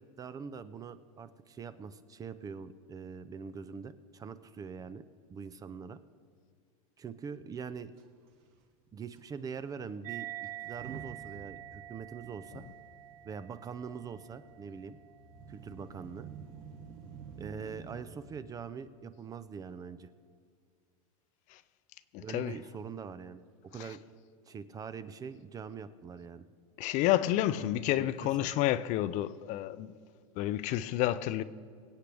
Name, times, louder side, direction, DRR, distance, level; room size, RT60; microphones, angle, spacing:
voice 1, 0.2-5.0 5.3-6.0 7.0-7.9 8.9-12.7 13.2-15.0 15.5-16.3 17.4-20.1 22.2-24.0 24.5-26.5 27.6-28.5, right 6 dB, 20° right, 0.5 m, -43 dB
Motor vehicle (road) / Engine starting / Accelerating revving vroom, 8.0-8.1 8.3-8.5 9.1-9.2 10.5-18.3, right 6 dB, 55° right, 1.5 m, -50 dB
sound 1, 10.0-16.9, right 15 dB, 75° right, 1.3 m, -47 dB
voice 2, 22.1-22.6 23.8-24.0 26.8-29.9 30.4-31.4, left 14 dB, 40° left, 0.5 m, -30 dB
24.0 x 8.4 x 3.4 m
supercardioid pair, 130°, 19 cm